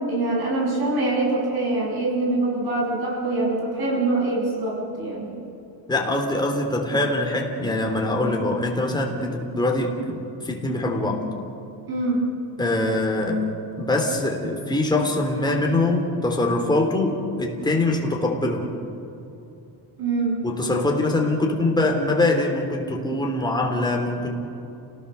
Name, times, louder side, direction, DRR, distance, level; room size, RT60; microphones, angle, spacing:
voice 1, 0.1-5.4 11.9-12.2 20.0-20.5, right 2 dB, 55° right, -2 dB, 7.7 m, -24 dB
voice 2, 5.9-11.3 12.6-18.7 20.4-24.4, left 2 dB, 10° left, 1 dB, 3.3 m, -23 dB
29.5 x 18.5 x 7.0 m, 2.9 s
cardioid pair, 145°, 45 cm